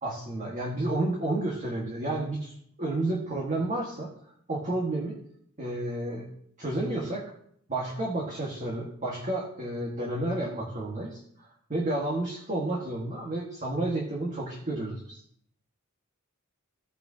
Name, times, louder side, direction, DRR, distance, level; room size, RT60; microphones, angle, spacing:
voice 1, 0.0-2.5 2.8-4.1 4.5-5.2 5.6-6.3 6.6-7.2 7.7-15.2, right 2 dB, 35° right, -3 dB, 1.6 m, -31 dB
16.5 x 5.6 x 2.8 m, 0.67 s
head